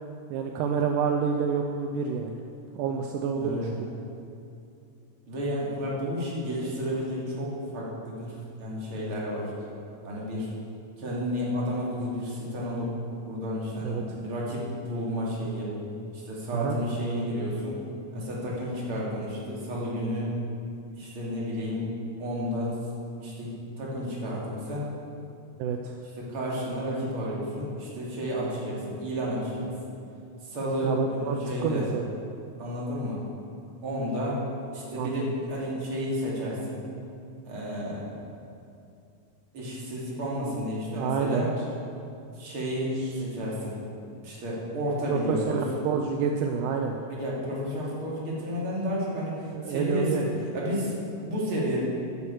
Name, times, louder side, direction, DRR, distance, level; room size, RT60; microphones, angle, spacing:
voice 1, 0.3-2.4 2.8-3.9 13.8-14.2 16.5-16.8 25.6-25.9 30.8-32.0 35.0-35.3 40.4-40.6 40.9-41.5 43.0-43.1 45.1-47.0 49.5-50.2, right 6 dB, 80° right, 3 dB, 2.2 m, -28 dB
voice 2, 3.4-3.7 5.3-9.5 10.0-10.5 11.0-12.9 13.3-15.7 16.1-17.8 18.1-20.4 21.0-21.9 22.2-22.8 23.2-24.9 26.2-29.7 30.4-31.8 32.6-33.2 33.8-34.4 34.7-36.8 37.5-38.1 39.5-41.5 42.3-43.8 44.2-45.7 47.1-50.3 50.5-51.8, equal, 40° right, -5 dB, 3.3 m, -31 dB
14.5 x 11.0 x 4.7 m, 2.6 s
omnidirectional pair, 3.8 m